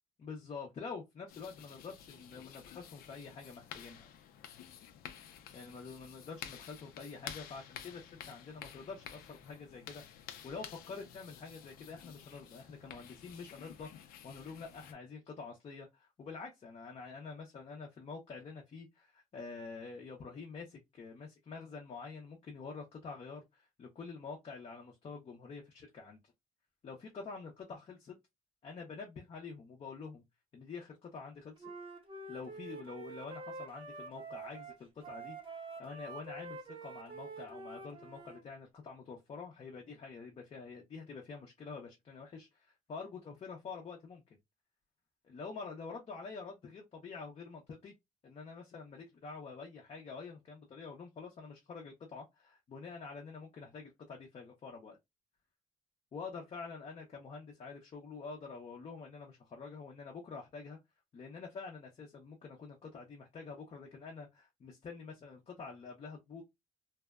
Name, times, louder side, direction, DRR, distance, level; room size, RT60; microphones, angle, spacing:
voice 1, 0.2-4.1 5.5-26.2 26.8-28.2 28.6-30.2 30.5-31.7 32.3-44.4 45.2-47.9 48.2-55.0 56.1-60.8 61.1-66.4, left 4 dB, 40° left, 0.6 m, -47 dB
sound 1, 1.3-14.9, left 9 dB, 85° left, 0.4 m, -51 dB
Wind instrument woodwind instrument, 31.6-38.4, right 3 dB, 35° right, 0.7 m, -47 dB
2.6 x 2.1 x 2.3 m
cardioid pair, 95°, 15 cm